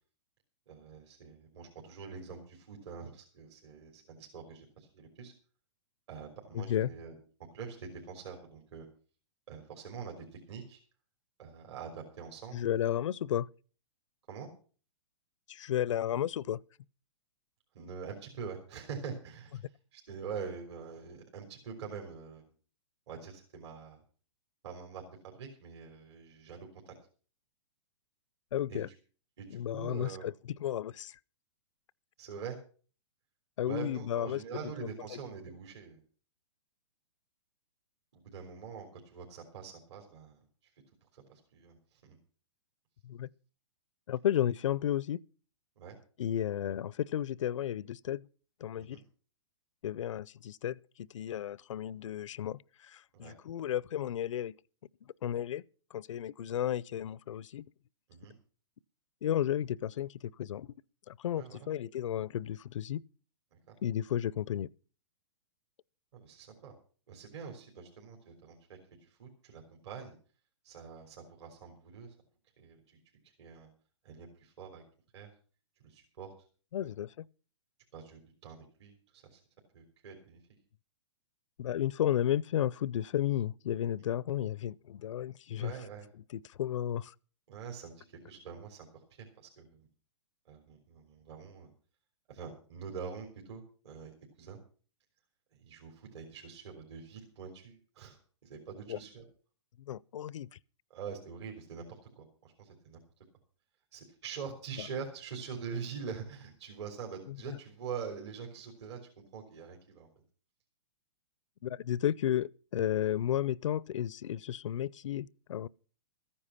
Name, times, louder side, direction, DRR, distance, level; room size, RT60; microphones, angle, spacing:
voice 1, 0.7-5.3 6.1-7.2 7.5-8.9 9.5-10.8 11.4-12.6 14.3-14.5 17.7-22.5 23.1-24.0 24.6-26.9 28.7-29.0 29.4-30.3 32.2-32.6 33.6-36.0 38.1-40.7 41.1-42.2 45.8-46.0 48.8-49.0 53.1-53.4 58.1-58.3 61.3-61.7 63.7-63.8 66.1-66.7 67.1-70.2 70.6-72.1 72.6-73.0 73.2-73.7 74.0-74.8 75.1-75.3 75.8-76.3 76.8-76.9 77.9-79.4 79.7-80.4 85.6-86.1 87.5-89.9 90.5-91.7 92.3-94.1 94.4-94.6 95.5-99.2 100.9-103.0 103.9-110.1, right 6 dB, 60° right, 3.7 m, -45 dB
voice 2, 6.5-6.9 12.5-13.5 15.5-16.6 28.5-28.9 29.5-30.3 30.6-31.2 33.6-34.4 43.0-43.3 44.1-45.2 46.2-48.3 48.6-49.0 49.8-54.5 55.2-55.6 55.9-57.6 59.2-60.7 61.1-63.0 63.8-64.7 76.7-77.3 81.6-85.7 86.3-87.1 98.9-99.0 99.8-100.5 107.3-107.4 111.6-115.7, left 11 dB, 75° left, 0.5 m, -33 dB
14.5 x 10.0 x 5.7 m
hypercardioid pair, 145°, 16 cm